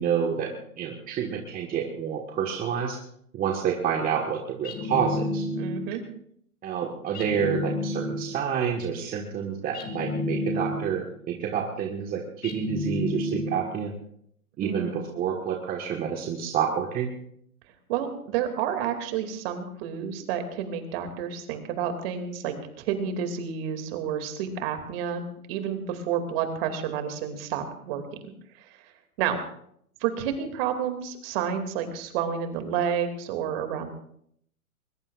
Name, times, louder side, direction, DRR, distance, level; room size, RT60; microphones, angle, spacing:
voice 1, 0.0-3.0 3.3-5.5 6.6-13.9 14.6-17.1, right 7 dB, 20° right, 1 dB, 1.5 m, -28 dB
sound 1, 4.6-6.0 7.1-8.5 9.7-11.1 12.4-13.8, left 2 dB, 20° left, 2.2 m, -31 dB
voice 2, 5.6-6.0 14.6-15.0 17.9-28.3 28.6-28.7 29.2-29.4 30.0-33.9, right 8 dB, 40° right, 6 dB, 2.6 m, -30 dB
21.5 x 20.5 x 2.5 m, 0.67 s
hypercardioid pair, 130°, 44 cm